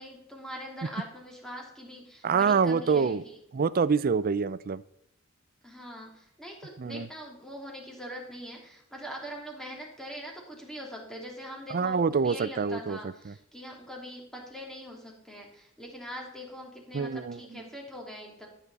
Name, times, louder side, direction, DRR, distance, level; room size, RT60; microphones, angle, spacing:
voice 1, 0.0-3.4 5.6-18.5, equal, ahead, -1 dB, 2.9 m, -42 dB
voice 2, 2.2-3.2 3.5-4.8 6.8-7.1 11.7-13.4 16.9-17.7, right 5 dB, 45° right, 17 dB, 0.5 m, -26 dB
14.5 x 9.1 x 4.1 m, 0.77 s
head